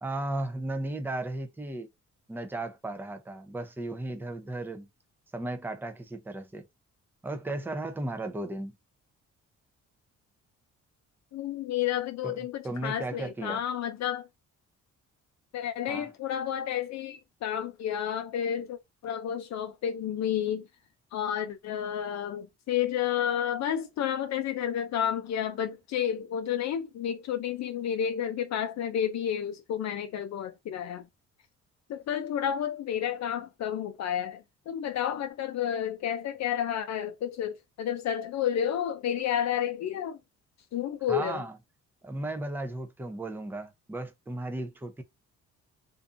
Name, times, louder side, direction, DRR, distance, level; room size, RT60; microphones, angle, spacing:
voice 1, 0.0-1.9 2.3-4.9 5.3-6.7 7.2-8.7 12.2-13.6 15.9-16.1 41.1-41.5 42.0-45.0, right 2 dB, 5° right, 0.5 m, -35 dB
voice 2, 11.3-14.3 15.5-20.7 21.1-31.1 31.9-40.2 40.7-41.4, left 9 dB, 65° left, 0.5 m, -31 dB
2.6 x 2.2 x 2.5 m
cardioid pair, 90°, 30 cm